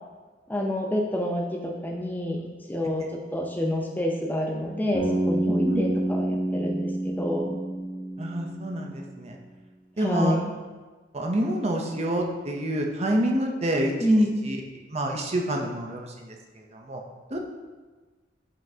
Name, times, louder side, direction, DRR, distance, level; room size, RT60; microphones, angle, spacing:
voice 1, 0.5-2.4 2.7-7.5 10.0-10.5 14.0-14.4, equal, 10° left, 0 dB, 0.5 m, -28 dB
Bass guitar, 4.9-9.0, right 1 dB, 35° left, 1.3 m, -28 dB
voice 2, 5.5-5.9 8.2-9.4 10.0-10.4 11.1-14.6 14.9-17.0 17.3-17.4, right 1 dB, 35° right, 1 dB, 0.7 m, -28 dB
7.4 x 5.6 x 2.8 m, 1.3 s
head